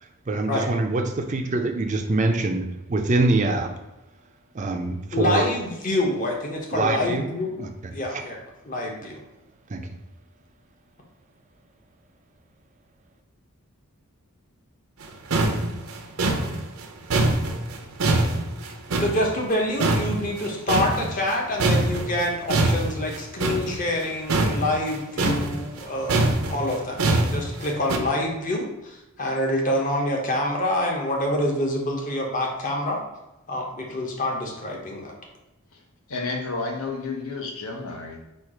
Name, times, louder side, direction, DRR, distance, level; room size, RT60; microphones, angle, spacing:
voice 1, 0.0-3.7 4.5-5.5 6.7-7.2 7.6-7.7 8.1-8.2 9.7-9.9, right 2 dB, 35° right, 5 dB, 0.4 m, -24 dB
voice 2, 5.1-7.5 7.9-8.4 8.7-9.2 19.0-33.0 33.5-35.2, left 1 dB, 35° left, 0 dB, 0.8 m, -26 dB
sound 1, 15.0-15.1 15.3-19.5 19.8-21.3 21.6-28.0, right 2 dB, 75° right, 0.6 m, -24 dB
voice 3, 36.1-38.3, left 3 dB, 75° left, 2 dB, 0.9 m, -31 dB
4.4 x 2.4 x 4.8 m, 0.97 s
head